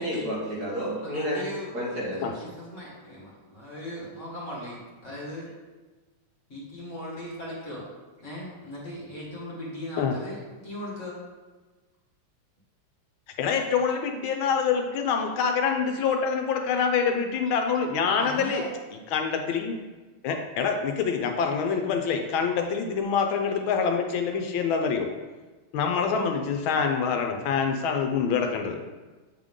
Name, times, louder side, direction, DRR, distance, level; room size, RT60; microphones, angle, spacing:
voice 1, 0.0-1.4 1.7-2.4, equal, 50° right, -6 dB, 2.1 m, -31 dB
voice 2, 1.0-1.7 2.1-5.5 6.5-7.8 8.2-11.2 18.1-18.7, left 1 dB, 40° left, -5 dB, 1.7 m, -38 dB
voice 3, 13.4-18.6 19.1-19.8 20.2-25.1 25.7-28.8, left 6 dB, 80° left, 4 dB, 1.4 m, -26 dB
8.2 x 3.7 x 3.6 m, 1.3 s
omnidirectional pair, 2.3 m